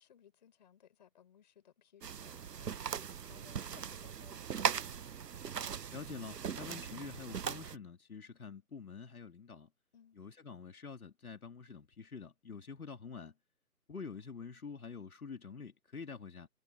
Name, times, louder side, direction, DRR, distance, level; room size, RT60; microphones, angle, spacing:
voice 1, 0.0-4.5 9.9-10.2, left 9 dB, 30° left, 5.0 m, -63 dB
sound 1, 2.0-7.8, right 7 dB, 85° right, 0.8 m, -39 dB
voice 2, 5.9-9.7 10.2-13.3 13.9-16.5, left 5 dB, 65° left, 2.5 m, -47 dB
figure-of-eight pair, 165°, 47 cm